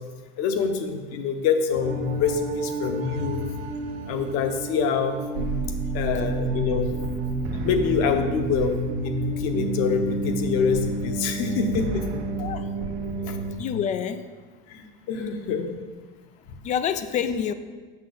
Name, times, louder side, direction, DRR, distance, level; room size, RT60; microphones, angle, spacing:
voice 1, 0.4-3.4 4.1-5.2 5.9-6.9 7.6-8.7 9.0-12.0 13.2-13.4 14.7-15.7, left 6 dB, 50° left, 6 dB, 1.0 m, -25 dB
sound 1, 1.7-13.5, right 2 dB, 90° right, 1.0 m, -30 dB
voice 2, 13.6-14.2 16.6-17.5, left 8 dB, 25° left, 11 dB, 0.3 m, -27 dB
7.5 x 5.7 x 3.9 m, 1.4 s
supercardioid pair, 125°, 30 cm